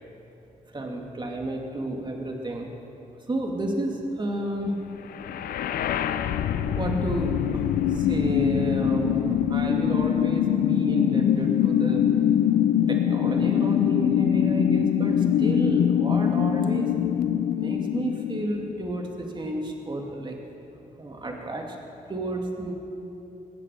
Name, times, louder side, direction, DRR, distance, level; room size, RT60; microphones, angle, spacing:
voice 1, 0.7-2.7 3.3-4.8 6.7-12.1 12.9-16.9 17.5-20.4 21.0-21.8 22.1-22.7, right 1 dB, 30° right, 1 dB, 2.3 m, -31 dB
sound 1, 5.1-19.1, left 10 dB, 85° left, 0.6 m, -23 dB
22.5 x 8.5 x 7.0 m, 2.9 s
cardioid pair, 70°, 15 cm